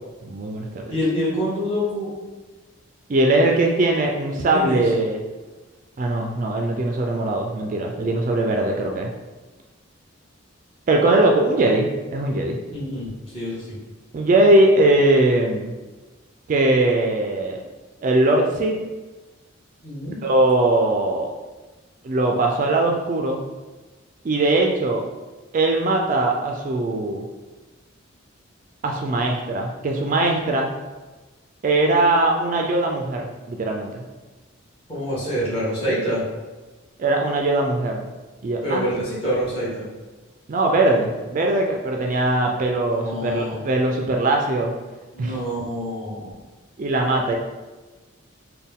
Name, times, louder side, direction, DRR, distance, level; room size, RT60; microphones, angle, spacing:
voice 1, 0.2-1.0 3.1-5.2 6.0-9.1 10.9-12.6 14.1-15.8 16.5-17.6 18.0-18.7 20.2-21.3 22.0-23.4 24.2-25.0 25.5-27.3 28.8-30.7 31.6-34.0 37.0-38.0 38.4-38.9 40.5-44.7 45.2-45.4 46.8-47.4, right 2 dB, 40° right, 2 dB, 0.3 m, -20 dB
voice 2, 0.9-2.1 4.5-4.8 12.7-13.8 19.8-20.2 34.9-36.2 38.6-39.8 42.9-43.6 45.1-46.3, equal, 30° left, -9 dB, 1.5 m, -26 dB
4.2 x 2.2 x 3.5 m, 1.2 s
head